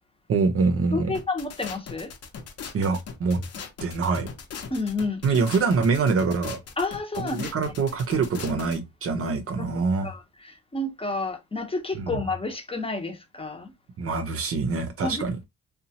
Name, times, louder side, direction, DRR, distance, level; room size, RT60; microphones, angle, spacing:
voice 1, 0.3-1.1 2.7-3.4 3.8-4.3 5.2-6.6 7.2-10.1 11.9-12.2 14.0-15.4, right 4 dB, 50° right, 0.6 m, -25 dB
voice 2, 0.9-2.1 4.7-5.2 6.8-7.5 10.0-13.7 15.0-15.4, left 3 dB, 20° left, 0.8 m, -30 dB
sound 1, 1.1-8.8, left 6 dB, 55° left, 0.9 m, -39 dB
2.8 x 2.2 x 2.8 m
cardioid pair, 90°, 30 cm